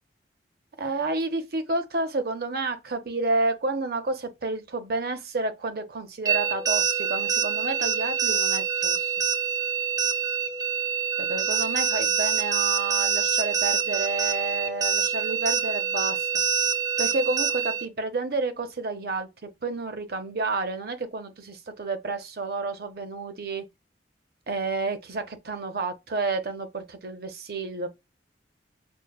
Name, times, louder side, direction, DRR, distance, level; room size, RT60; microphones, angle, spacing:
voice 1, 0.8-9.1 11.2-16.3 17.0-19.3 19.6-23.6 24.5-27.9, right 3 dB, 60° right, 0.7 m, -30 dB
sound 1, 6.3-17.9, right 7 dB, 20° right, 0.3 m, -26 dB
6.2 x 2.2 x 2.2 m
head